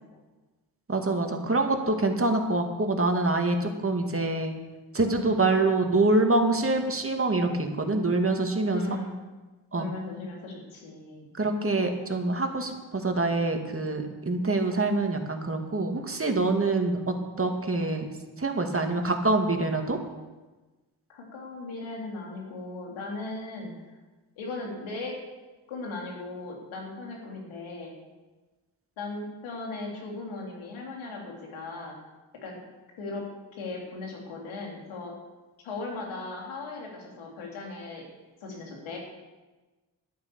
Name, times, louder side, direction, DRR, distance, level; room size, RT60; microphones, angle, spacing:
voice 1, 0.9-4.5 4.9-8.8 9.7-9.9 11.4-18.1 18.4-20.0, right 2 dB, 30° right, 4 dB, 2.3 m, -25 dB
voice 2, 5.0-5.5 8.6-9.2 9.7-11.3 21.1-23.7 24.4-25.2 25.7-27.9 29.0-32.0 32.4-32.6 33.0-33.2 33.5-35.1 35.6-38.0 38.4-39.0, left 3 dB, 85° left, 0 dB, 3.4 m, -37 dB
11.5 x 9.7 x 7.0 m, 1.2 s
supercardioid pair, 55°, 47 cm